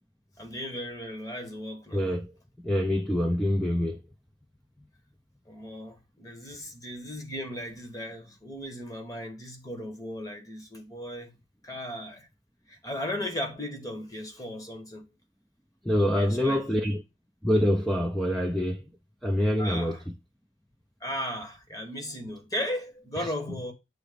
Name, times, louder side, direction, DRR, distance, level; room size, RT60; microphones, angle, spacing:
voice 1, 0.4-2.1 5.5-11.3 11.6-12.3 12.7-15.1 16.0-16.6 19.6-20.0 21.0-23.7, equal, 20° left, 1.1 m, -36 dB
voice 2, 1.9-2.3 2.6-4.0 15.9-17.0 17.4-18.8 19.2-20.0 23.2-23.3, equal, ahead, 0.4 m, -25 dB
7.9 x 3.0 x 5.0 m
head